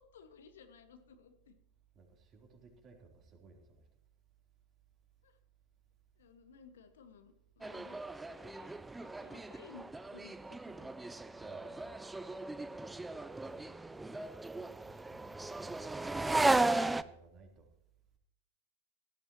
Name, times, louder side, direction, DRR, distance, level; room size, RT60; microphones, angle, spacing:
voice 1, 0.0-1.5 5.2-5.3 6.2-9.8 10.1-10.9 13.4-13.8, left 5 dB, 60° left, 8 dB, 1.5 m, -57 dB
voice 2, 1.9-3.8 11.4-11.9 14.5-17.7, right 4 dB, 30° right, 1 dB, 3.6 m, -58 dB
sound 1, 7.6-17.0, right 2 dB, 10° right, 0.5 m, -35 dB
17.5 x 14.0 x 3.0 m, 0.80 s
figure-of-eight pair, 90°, 0 cm